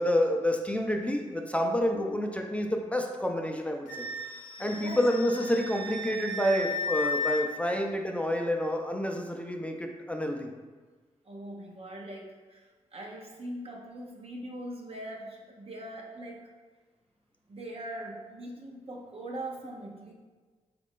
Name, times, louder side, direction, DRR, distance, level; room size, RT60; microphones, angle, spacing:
voice 1, 0.0-4.1 4.6-10.5, equal, 10° left, 3 dB, 0.5 m, -28 dB
Wind instrument woodwind instrument, 3.9-7.4, left 2 dB, 80° left, 0.6 m, -34 dB
voice 2, 4.6-5.0 11.2-16.5 17.5-20.1, right 1 dB, 50° right, -1 dB, 0.7 m, -41 dB
4.2 x 2.5 x 3.6 m, 1.3 s
supercardioid pair, 45°, 13 cm